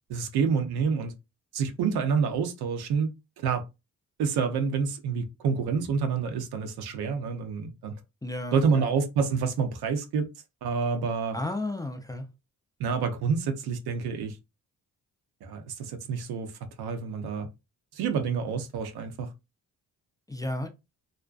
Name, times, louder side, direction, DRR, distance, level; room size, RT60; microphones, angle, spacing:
voice 1, 0.1-1.1 1.5-3.6 4.2-7.9 8.5-10.3 10.6-11.4 12.8-14.3 15.4-16.5 16.8-17.5 17.9-19.3, right 5 dB, 80° right, 0.6 m, -28 dB
voice 2, 8.2-8.9 11.3-12.3 20.3-20.7, left 1 dB, 10° left, 0.4 m, -33 dB
2.4 x 2.1 x 2.4 m
supercardioid pair, 55°, 38 cm